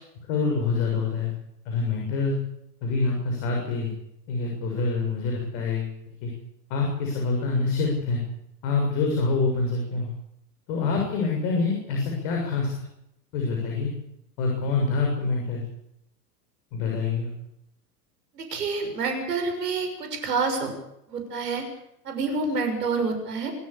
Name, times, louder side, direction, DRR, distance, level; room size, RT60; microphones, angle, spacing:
voice 1, 0.3-1.3 1.7-2.4 2.8-3.9 4.3-5.9 6.2-6.3 6.7-8.2 8.6-10.1 10.7-12.7 13.3-13.9 14.4-15.6 16.7-17.3, left 4 dB, 55° left, 1 dB, 7.0 m, -26 dB
voice 2, 18.3-20.7 21.1-21.6 22.0-23.5, right 4 dB, 75° right, 5 dB, 6.6 m, -28 dB
25.5 x 14.0 x 8.4 m, 0.79 s
figure-of-eight pair, 90°, 48 cm